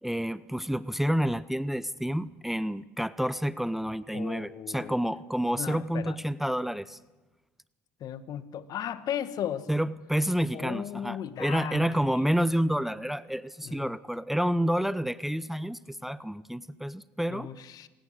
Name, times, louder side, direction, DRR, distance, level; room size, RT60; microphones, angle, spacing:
voice 1, 0.0-7.0 9.7-17.5, equal, 5° right, 0.7 m, -29 dB
voice 2, 4.1-5.0 5.6-6.2 8.0-9.7 10.5-12.3 13.6-13.9 17.3-17.9, left 10 dB, 55° left, 1.4 m, -36 dB
27.5 x 18.5 x 6.5 m
hypercardioid pair, 60°, 8 cm